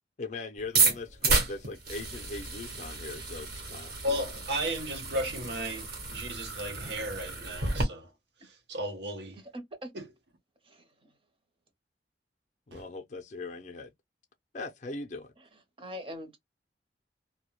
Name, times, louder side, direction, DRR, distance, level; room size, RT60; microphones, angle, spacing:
voice 1, 0.2-4.3 12.7-13.9 14.5-15.3, left 3 dB, 40° left, 0.4 m, -40 dB
sound 1, 0.6-7.8, right 3 dB, 60° right, 1.1 m, -31 dB
voice 2, 4.0-8.1 8.4-9.4 9.9-10.0 12.7-12.8, equal, 75° right, 0.7 m, -35 dB
voice 3, 9.5-9.9 10.6-11.1 15.8-16.4, equal, 30° right, 0.7 m, -42 dB
2.1 x 2.1 x 3.0 m
head